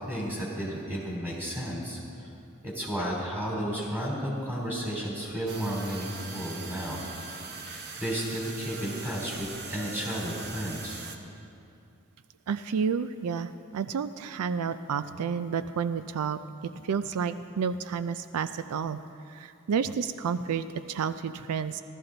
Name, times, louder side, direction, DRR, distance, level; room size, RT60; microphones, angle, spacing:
voice 1, 0.1-2.0 2.7-7.0 7.6-11.0, equal, 10° right, -4 dB, 3.2 m, -33 dB
sound 1, 5.5-11.2, right 4 dB, 45° right, 1.0 m, -41 dB
voice 2, 12.5-19.0 19.3-21.8, right 6 dB, 85° right, 12 dB, 0.4 m, -30 dB
16.0 x 13.0 x 3.9 m, 2.6 s
head